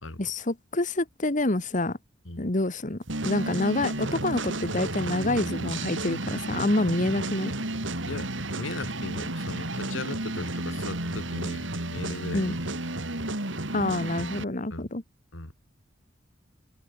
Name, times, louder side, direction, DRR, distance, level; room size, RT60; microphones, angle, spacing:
voice 1, 0.2-2.0 2.4-3.0 3.2-7.5 12.3-12.5 13.7-15.0, left 2 dB, 40° left, 1.6 m, -27 dB
sound 1, 3.1-14.4, right 2 dB, 70° right, 4.3 m, -32 dB
voice 2, 8.1-12.6 14.7-14.9 15.3-15.5, left 2 dB, 80° left, 2.9 m, -38 dB
head